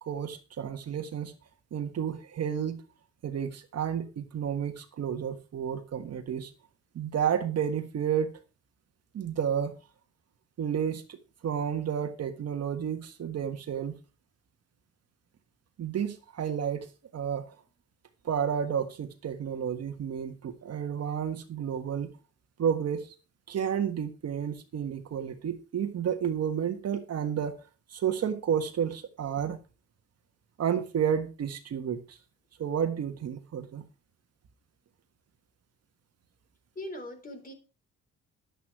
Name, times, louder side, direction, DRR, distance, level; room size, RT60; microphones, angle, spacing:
voice 1, 0.0-1.3 1.7-2.8 3.2-6.5 6.9-8.4 9.1-9.7 10.6-11.2 11.4-14.0 15.8-16.9 17.1-17.4 18.2-22.1 22.6-23.1 23.5-27.5 27.9-29.6 30.6-32.2 32.6-33.8, right 8 dB, 55° right, 8 dB, 1.5 m, -31 dB
voice 2, 36.8-37.5, left 1 dB, 30° left, 6 dB, 3.5 m, -40 dB
11.0 x 8.6 x 4.6 m, 0.32 s
cardioid pair, 90°, 30 cm